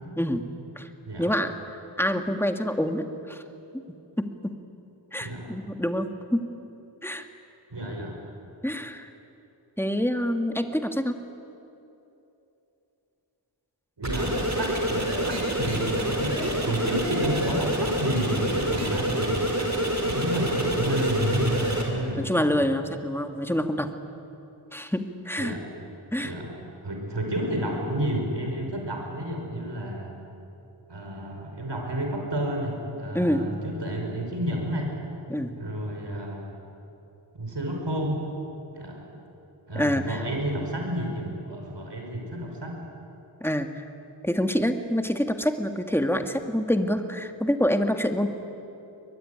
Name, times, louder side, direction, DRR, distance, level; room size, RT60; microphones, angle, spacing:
voice 1, 0.2-0.5 0.8-0.9 1.2-1.5 2.0-3.4 3.7-4.6 5.1-6.5 7.0-7.3 8.6-9.1 9.8-11.2 22.2-23.9 24.7-25.6 26.1-26.3 33.1-33.5 35.3-35.5 39.7-40.2 43.4-43.8 44.2-48.3, equal, 5° left, 6 dB, 1.8 m, -26 dB
voice 2, 1.1-1.4 5.2-5.6 7.7-8.2 14.0-16.4 16.6-19.5 20.0-22.5 23.0-23.1 25.4-25.7 26.2-30.1 30.9-34.9 35.6-36.4 37.3-38.3 38.7-39.0 39.7-42.8, right 1 dB, 70° right, 1 dB, 5.7 m, -30 dB
sound 1, 14.0-21.8, equal, 35° right, 4.9 m, -27 dB
22.0 x 22.0 x 9.9 m, 2.9 s
wide cardioid pair, 60°, 45 cm